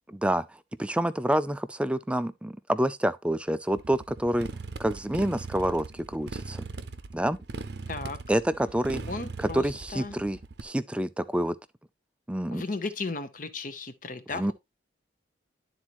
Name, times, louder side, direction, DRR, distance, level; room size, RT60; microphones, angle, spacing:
voice 1, 0.8-4.5 4.8-6.7 7.1-7.4 8.3-9.0 9.4-11.6 12.3-12.6 14.3-14.5, right 1 dB, 5° right, 0.3 m, -27 dB
Motorcycle, 3.7-10.6, right 3 dB, 60° right, 0.6 m, -39 dB
voice 2, 7.9-8.2 9.1-10.2 12.5-14.5, left 3 dB, 45° left, 0.9 m, -35 dB
11.5 x 4.1 x 3.0 m
head